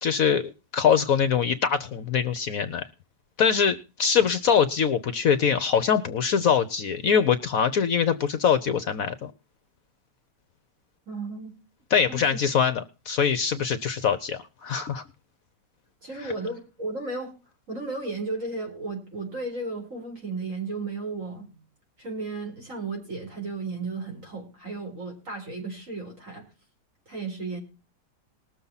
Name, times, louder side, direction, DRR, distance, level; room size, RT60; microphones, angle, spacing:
voice 1, 0.0-2.9 3.4-9.3 11.9-15.0 16.2-16.3, left 7 dB, 60° left, 11 dB, 1.1 m, -23 dB
voice 2, 11.1-11.5 12.1-12.4 16.0-17.3 17.7-21.6 22.0-26.4 27.1-27.6, right 3 dB, 45° right, 2 dB, 4.8 m, -34 dB
20.0 x 7.1 x 4.0 m, 0.32 s
omnidirectional pair, 1.8 m